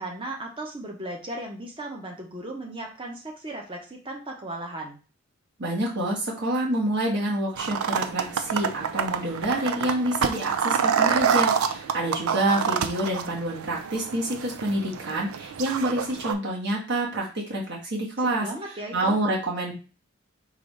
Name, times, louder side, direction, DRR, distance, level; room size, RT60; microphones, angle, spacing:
voice 1, 0.0-5.0 18.2-19.2, right 1 dB, 25° right, 1 dB, 1.0 m, -36 dB
voice 2, 5.6-18.5 18.9-19.7, right 1 dB, 55° right, -4 dB, 1.8 m, -27 dB
sound 1, 7.6-16.3, right 7 dB, 85° right, 0.5 m, -27 dB
3.8 x 2.7 x 4.7 m, 0.35 s
head